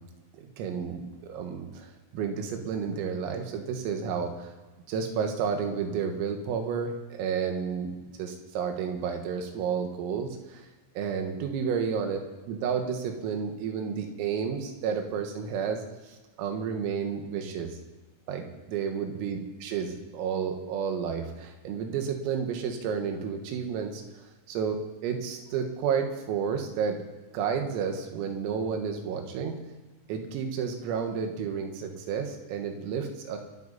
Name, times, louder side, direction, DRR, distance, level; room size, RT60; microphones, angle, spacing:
voice 1, 0.3-1.9 2.1-4.5 4.9-7.9 8.2-10.6 11.0-12.2 12.5-15.8 16.4-17.7 18.3-24.0 24.5-27.0 27.3-29.6 30.1-33.4, right 6 dB, 80° right, 4 dB, 4.3 m, -31 dB
25.0 x 9.9 x 4.2 m, 1.2 s
omnidirectional pair, 6.0 m